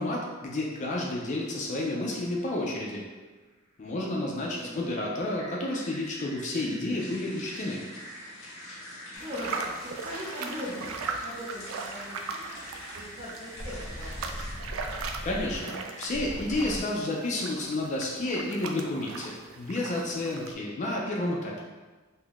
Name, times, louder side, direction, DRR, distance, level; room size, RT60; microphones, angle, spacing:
voice 1, 0.0-3.0 3.8-7.8 15.2-21.5, left 2 dB, 35° left, -2 dB, 0.3 m, -31 dB
voice 2, 4.0-4.9 9.1-12.5 12.9-14.4, left 1 dB, 25° right, -7 dB, 0.9 m, -41 dB
sound 1, 5.4-16.8, equal, 15° left, 0.7 m, -43 dB
sound 2, 7.0-14.6, left 1 dB, 90° left, 0.6 m, -46 dB
sound 3, 9.2-20.5, right 4 dB, 80° right, 0.3 m, -39 dB
2.6 x 2.4 x 3.5 m, 1.3 s
head